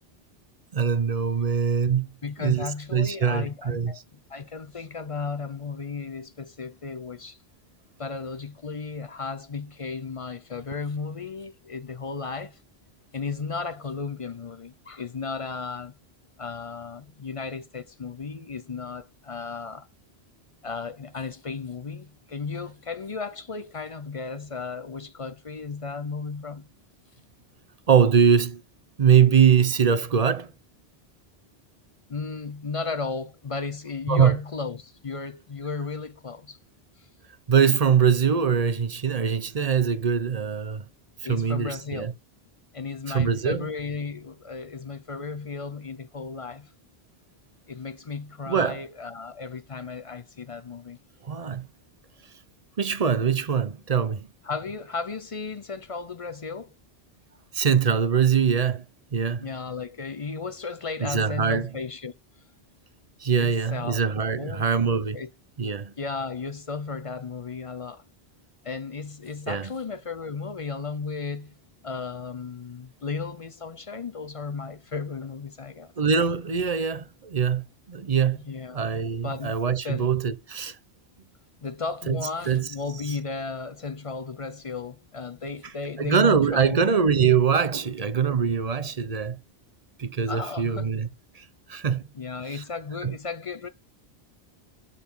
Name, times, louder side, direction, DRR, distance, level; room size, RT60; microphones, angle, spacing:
voice 1, 0.7-2.1 2.4-3.9 27.9-28.6 29.0-30.5 34.1-34.3 37.5-40.8 41.2-42.1 43.1-43.7 48.5-48.9 51.2-51.7 52.8-54.3 57.5-58.8 59.1-59.5 61.0-61.7 63.2-65.2 65.6-65.9 69.5-69.7 76.0-78.4 78.7-80.8 82.1-82.7 83.1-83.2 86.0-89.4 90.0-91.1 91.3-92.1 92.5-92.6 93.0-93.1, right 7 dB, 40° right, 0.7 m, -23 dB
voice 2, 2.2-4.0 4.3-7.4 8.0-12.6 13.1-15.9 16.4-19.9 20.6-26.7 32.1-36.6 37.0-37.1 41.2-42.1 42.7-46.7 47.7-51.0 54.4-56.7 59.4-62.1 63.3-64.0 64.4-64.6 65.1-65.3 66.0-68.0 68.6-71.5 71.8-75.9 78.5-78.8 79.2-79.6 79.8-80.1 81.6-86.9 90.3-90.9 92.1-93.7, left 4 dB, 40° left, 0.6 m, -34 dB
11.5 x 4.2 x 5.4 m
omnidirectional pair, 1.1 m